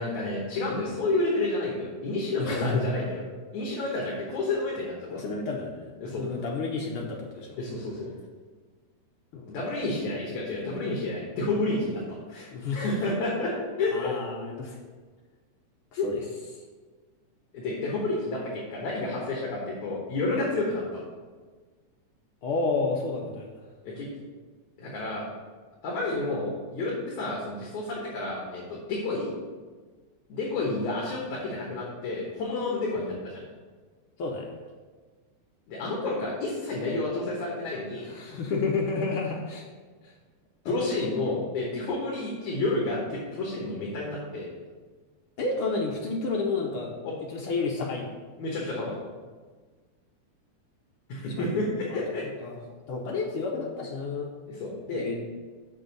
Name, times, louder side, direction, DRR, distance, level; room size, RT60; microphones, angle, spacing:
voice 1, 0.0-3.2 3.5-5.2 6.0-6.2 7.6-8.1 9.5-14.1 16.0-16.1 17.5-21.0 23.8-24.1 24.8-25.2 25.8-29.3 30.3-33.4 35.7-38.1 40.6-44.5 47.0-47.1 48.4-49.0 51.1-52.2 54.5-55.1, left 2 dB, 70° left, -4 dB, 2.7 m, -30 dB
voice 2, 2.2-2.9 5.1-7.6 9.3-9.6 9.8-10.2 12.5-12.9 13.9-14.8 15.9-16.2 16.5-16.6 22.4-23.6 30.6-31.0 34.2-34.5 38.0-39.6 40.0-40.1 40.6-40.8 45.4-46.9 47.2-48.1 51.3-51.6 51.9-52.1 52.4-52.6 52.9-54.3 54.9-55.2, left 3 dB, 90° left, -1 dB, 1.2 m, -31 dB
6.5 x 6.5 x 5.3 m, 1.4 s
omnidirectional pair, 3.6 m